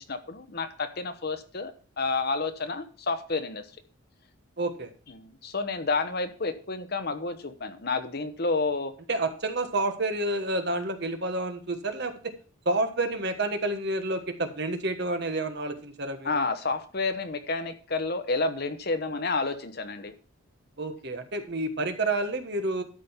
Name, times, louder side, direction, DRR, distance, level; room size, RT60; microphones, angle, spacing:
voice 1, 0.0-3.7 5.1-8.9 16.2-20.1, left 3 dB, 50° left, 8 dB, 1.0 m, -30 dB
voice 2, 4.6-4.9 9.1-12.1 12.6-16.4 20.8-22.8, right 2 dB, 55° right, 7 dB, 1.4 m, -29 dB
12.5 x 5.3 x 5.7 m, 0.40 s
head